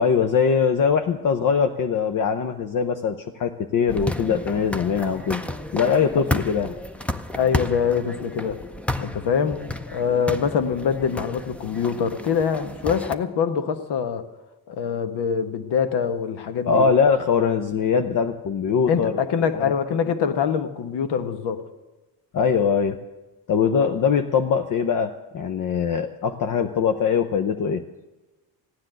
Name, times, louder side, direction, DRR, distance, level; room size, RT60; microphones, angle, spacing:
voice 1, 0.0-5.4 5.7-6.7 16.7-19.3 19.6-19.7 22.3-23.0 23.5-27.8, left 6 dB, 50° left, 0.8 m, -22 dB
sound 1, 3.9-13.2, left 2 dB, 5° left, 0.5 m, -32 dB
voice 2, 7.3-8.6 9.0-9.6 9.9-14.3 14.7-16.9 18.9-21.6, left 7 dB, 75° left, 1.3 m, -24 dB
15.5 x 9.8 x 7.8 m
cardioid pair, 125°, 42 cm